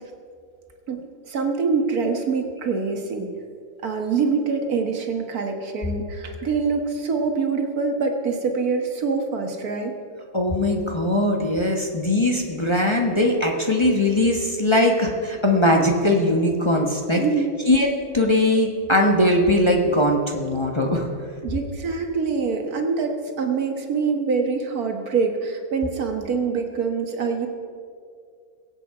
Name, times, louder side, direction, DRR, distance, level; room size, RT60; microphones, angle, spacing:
voice 1, 1.3-3.3 3.8-9.9 17.1-17.5 21.4-27.5, right 5 dB, 75° right, 4 dB, 1.8 m, -25 dB
voice 2, 10.3-17.2 17.7-17.9 18.1-21.1, left 1 dB, 20° left, 0 dB, 1.2 m, -20 dB
22.5 x 8.2 x 4.8 m, 2.3 s
omnidirectional pair, 1.6 m